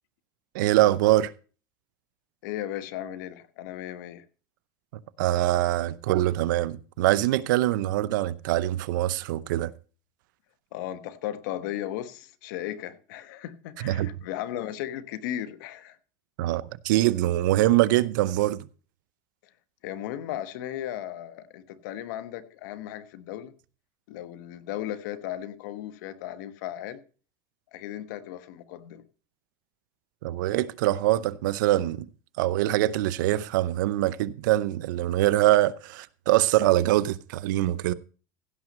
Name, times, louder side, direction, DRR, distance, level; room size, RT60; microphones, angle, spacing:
voice 1, 0.5-1.3 5.2-9.7 13.8-14.1 16.4-18.7 30.2-32.1 32.4-37.9, right 15 dB, 90° right, 0.6 m, -23 dB
voice 2, 2.4-4.2 10.7-16.0 19.8-23.5 24.1-27.0 27.7-29.0, left 12 dB, 80° left, 1.2 m, -36 dB
16.0 x 6.1 x 5.4 m
supercardioid pair, 140°, 10 cm